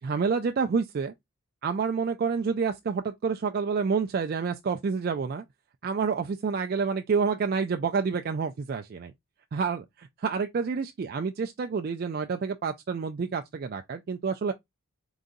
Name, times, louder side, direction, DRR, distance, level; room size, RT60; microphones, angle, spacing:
voice 1, 0.0-1.1 1.6-5.4 5.8-9.1 9.5-14.5, right 5 dB, 45° right, 0.3 m, -28 dB
3.8 x 3.7 x 2.5 m
head